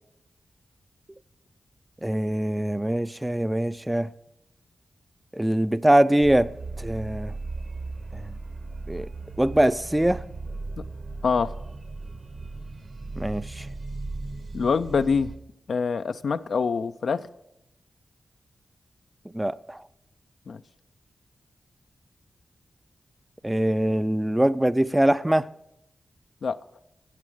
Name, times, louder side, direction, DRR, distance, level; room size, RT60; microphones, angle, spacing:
voice 1, 2.0-4.1 5.3-7.3 8.1-8.3 8.9-9.1 9.4-10.2 13.2-13.7 19.3-19.8 23.4-25.5, right 1 dB, 15° right, 0.4 m, -23 dB
sound 1, 6.2-15.4, right 3 dB, 60° right, 1.4 m, -37 dB
voice 2, 14.5-15.3 15.7-17.3 20.5-20.6 26.4-26.6, left 5 dB, 75° left, 0.4 m, -25 dB
13.0 x 8.5 x 6.2 m
cardioid pair, 50°, 0 cm